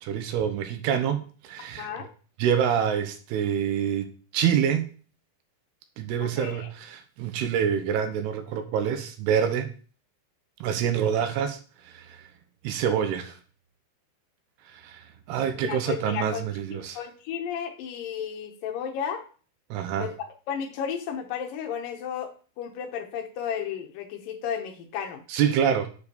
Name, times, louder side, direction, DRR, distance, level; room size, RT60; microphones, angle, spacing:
voice 1, 0.0-1.9 2.4-4.9 6.0-9.7 10.6-11.6 11.9-12.2 12.6-13.3 14.8-15.0 15.3-17.0 19.7-20.1 25.3-25.9, right 8 dB, 75° right, 7 dB, 2.5 m, -26 dB
voice 2, 1.8-2.1 6.2-6.7 15.6-16.4 16.7-19.2 20.0-22.3 22.6-25.2, left 8 dB, 75° left, 4 dB, 2.1 m, -33 dB
7.0 x 4.4 x 6.7 m, 0.40 s
omnidirectional pair, 5.3 m